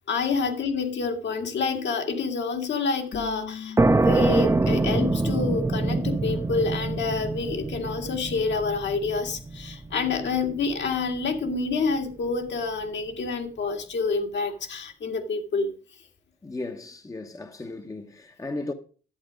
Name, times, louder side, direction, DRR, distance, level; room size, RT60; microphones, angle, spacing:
voice 1, 0.1-15.7, left 4 dB, 65° left, 2.3 m, -28 dB
sound 1, 3.1-8.5, left 7 dB, 40° left, 1.2 m, -43 dB
sound 2, 3.8-11.2, right 2 dB, 15° right, 0.7 m, -25 dB
voice 2, 16.4-18.7, left 2 dB, 15° left, 0.9 m, -36 dB
11.5 x 8.5 x 5.1 m
cardioid pair, 90°, 20 cm